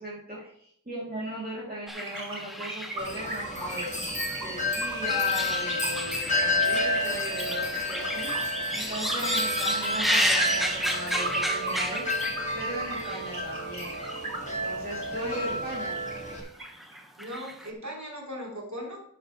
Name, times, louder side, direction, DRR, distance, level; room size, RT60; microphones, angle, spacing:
voice 1, 0.0-3.9 4.4-12.3 12.5-13.9 14.5-15.9, equal, 25° right, -7 dB, 3.1 m, -38 dB
sound 1, 1.9-4.3 4.7-12.6 13.0-13.3 13.9-14.5 14.7-14.8 15.7-16.1 16.4-17.7, equal, ahead, 1.5 m, -32 dB
sound 2, 2.1-17.0, right 2 dB, 85° right, 2.5 m, -38 dB
Wind chime, 3.0-16.4, left 1 dB, 20° left, 2.2 m, -30 dB
voice 2, 15.2-15.6 17.2-19.0, equal, 60° right, -3 dB, 3.9 m, -38 dB
11.0 x 8.5 x 3.3 m, 0.64 s
wide cardioid pair, 45°, 33 cm